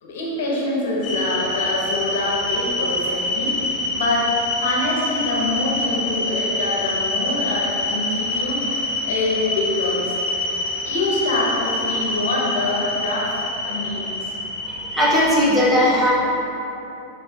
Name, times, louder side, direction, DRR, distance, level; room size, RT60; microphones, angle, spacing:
voice 1, 0.0-10.1 10.8-13.4 13.7-14.3, left 2 dB, 85° left, -4 dB, 0.9 m, -25 dB
sound 1, 1.0-15.4, left 2 dB, 35° left, 0.5 m, -26 dB
voice 2, 14.6-16.1, equal, 5° right, -8 dB, 0.7 m, -18 dB
4.0 x 3.6 x 2.3 m, 3.0 s
supercardioid pair, 160°, 0 cm